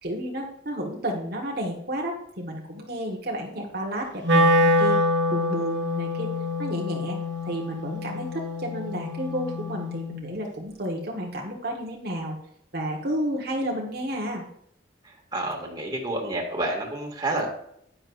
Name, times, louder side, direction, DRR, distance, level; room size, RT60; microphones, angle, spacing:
voice 1, 0.0-5.0 5.3-6.3 6.6-7.2 7.4-12.4 12.7-14.4, equal, 55° right, -1 dB, 1.6 m, -31 dB
Wind instrument woodwind instrument, 4.2-10.3, left 1 dB, 80° right, 1.9 m, -25 dB
voice 2, 15.3-17.5, right 2 dB, 20° right, -1 dB, 2.3 m, -29 dB
10.5 x 9.9 x 2.6 m, 0.70 s
head